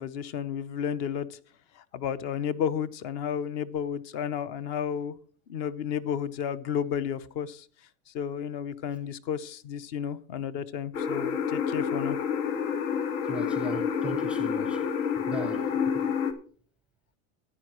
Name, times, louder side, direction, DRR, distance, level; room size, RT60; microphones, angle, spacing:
voice 1, 0.0-1.4 1.8-5.2 5.5-7.7 8.1-12.2, left 8 dB, 45° left, 0.8 m, -32 dB
sound 1, 10.9-16.3, left 7 dB, 85° left, 1.8 m, -28 dB
voice 2, 13.3-15.9, right 4 dB, 5° right, 0.6 m, -39 dB
15.0 x 9.8 x 3.0 m
supercardioid pair, 170°, 41 cm